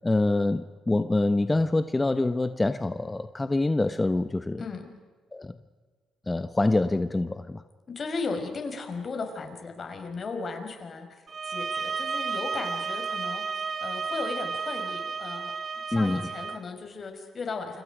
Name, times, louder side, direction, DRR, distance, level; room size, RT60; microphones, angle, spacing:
voice 1, 0.0-4.6 5.3-5.6 6.3-7.6 15.9-16.3, left 2 dB, 15° left, 10 dB, 1.0 m, -25 dB
voice 2, 4.6-4.9 7.9-13.4 13.8-15.5 15.9-17.8, left 4 dB, 45° left, 5 dB, 5.6 m, -36 dB
sound 1, 11.3-16.6, right 5 dB, 40° right, 1.4 m, -32 dB
29.5 x 26.5 x 5.1 m, 1.5 s
cardioid pair, 90°, 0 cm